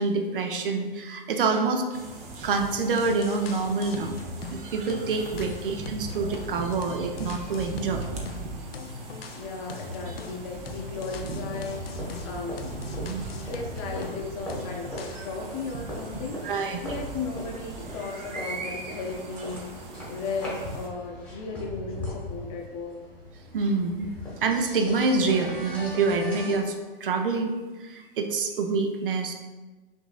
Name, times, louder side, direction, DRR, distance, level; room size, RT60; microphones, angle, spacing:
voice 1, 0.0-1.8 2.4-4.1 4.5-8.0 13.0-13.3 16.4-16.8 23.5-24.1 24.4-26.7 27.0-27.5 27.8-29.3, right 4 dB, 65° right, 4 dB, 0.6 m, -26 dB
sound 1, 1.9-20.9, right 2 dB, 20° right, 0.6 m, -39 dB
sound 2, 3.0-4.6 4.9-8.4 8.7-14.2 14.5-15.3, left 5 dB, 80° left, 0.5 m, -41 dB
voice 2, 9.4-12.7 13.4-16.4 16.8-19.7 20.0-23.1, left 4 dB, 35° left, 1 dB, 0.6 m, -35 dB
sound 3, 11.5-26.6, left 1 dB, 5° left, 1.3 m, -41 dB
5.8 x 2.6 x 2.4 m, 1.3 s
hypercardioid pair, 115°, 29 cm